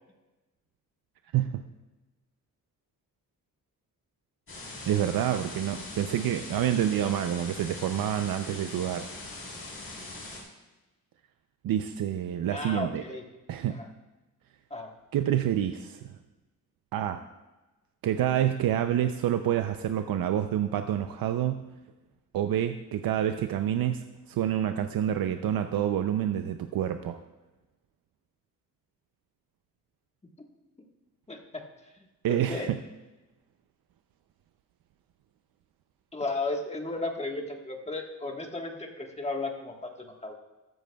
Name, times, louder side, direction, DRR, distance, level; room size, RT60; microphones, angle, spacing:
voice 1, 1.3-1.6 4.9-9.1 11.6-13.0 13.5-13.8 15.1-16.1 16.9-17.2 18.0-21.7 22.3-27.2 32.2-32.8, right 10 dB, 90° right, 8 dB, 0.6 m, -28 dB
sound 1, 4.5-10.4, left 2 dB, 40° left, 3.7 m, -41 dB
voice 2, 12.5-13.2 13.7-13.9 14.7-14.9 31.3-31.6 32.3-32.7 36.1-40.3, left 2 dB, 20° left, 2 dB, 1.4 m, -34 dB
14.0 x 13.5 x 2.3 m, 1.1 s
wide cardioid pair, 135°, 34 cm